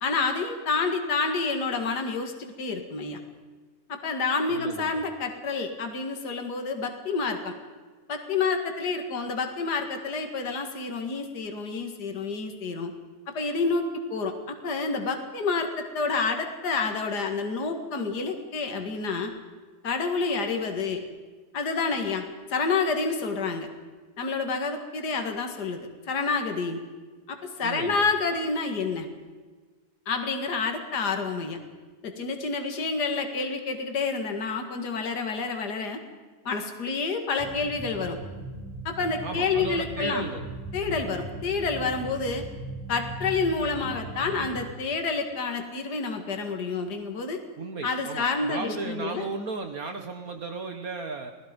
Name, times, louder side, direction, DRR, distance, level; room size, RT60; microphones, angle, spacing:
voice 1, 0.0-3.2 3.9-7.6 8.1-12.9 13.3-19.3 19.8-21.0 21.5-22.2 22.5-23.7 24.2-26.8 27.3-29.1 30.1-31.6 32.0-36.0 36.4-38.2 38.8-40.3 40.7-42.4 42.9-47.4 47.8-49.3, left 4 dB, 70° left, 5 dB, 2.5 m, -28 dB
voice 2, 4.5-5.0 27.6-28.0 39.2-40.5 47.6-51.3, right 3 dB, 55° right, 6 dB, 1.8 m, -35 dB
sound 1, 37.4-44.6, right 2 dB, 5° right, 4.0 m, -39 dB
29.5 x 19.0 x 5.3 m, 1.4 s
omnidirectional pair, 1.8 m